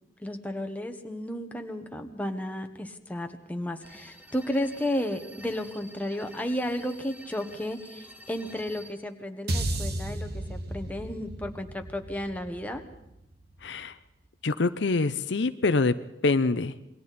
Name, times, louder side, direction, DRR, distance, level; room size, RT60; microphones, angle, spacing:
voice 1, 0.2-12.8, left 1 dB, 10° left, 5 dB, 1.3 m, -33 dB
sound 1, 3.8-8.9, right 1 dB, 10° right, 1.6 m, -49 dB
sound 2, 9.5-13.8, right 1 dB, 60° right, 1.9 m, -34 dB
voice 2, 13.6-14.0 14.4-15.9 16.2-16.7, left 3 dB, 65° left, 12 dB, 0.7 m, -25 dB
28.0 x 22.0 x 4.3 m, 0.85 s
head